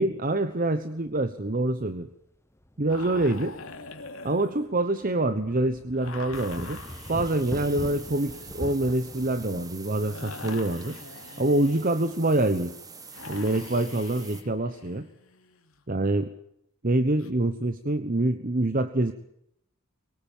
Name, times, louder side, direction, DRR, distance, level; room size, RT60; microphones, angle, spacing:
voice 1, 0.0-2.1 2.8-3.6 4.2-6.8 7.1-11.0 11.4-12.7 13.3-15.1 15.9-16.3 16.8-19.1, right 2 dB, 40° right, 10 dB, 1.1 m, -26 dB
sound 1, 1.1-1.2 1.6-1.7 2.6-4.0 4.4-4.5 5.0-9.8, equal, 10° left, 1.1 m, -41 dB
sound 2, 2.9-5.4 5.9-12.1 13.1-15.8 17.2-17.3, left 4 dB, 75° left, 2.9 m, -45 dB
sound 3, 6.3-14.4, right 5 dB, 15° right, 1.8 m, -46 dB
23.0 x 18.5 x 9.1 m, 0.75 s
head